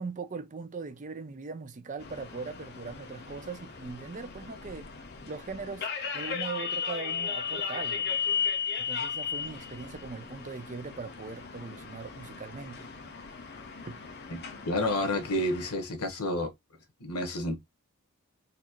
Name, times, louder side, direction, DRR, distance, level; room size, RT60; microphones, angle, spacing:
voice 1, 0.0-4.9 5.3-5.9 6.1-8.1 8.8-12.9 13.9-14.0, right 4 dB, 35° right, 0.5 m, -40 dB
sound 1, 2.0-15.7, left 6 dB, 45° left, 0.7 m, -36 dB
voice 2, 14.6-16.5 17.0-17.6, left 1 dB, 90° left, 1.2 m, -29 dB
4.1 x 2.8 x 2.9 m
head